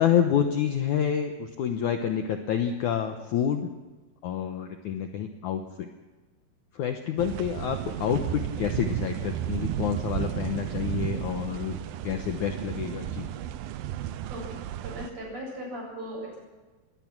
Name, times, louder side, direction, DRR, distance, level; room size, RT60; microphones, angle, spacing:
voice 1, 0.0-3.6 4.2-5.9 6.7-11.8 12.0-13.3, left 8 dB, 70° left, 6 dB, 2.0 m, -28 dB
sound 1, 7.2-15.1, right 12 dB, 75° right, 2.5 m, -33 dB
voice 2, 14.3-16.4, equal, 40° right, -2 dB, 9.0 m, -38 dB
21.5 x 20.0 x 6.1 m, 1.3 s
omnidirectional pair, 4.5 m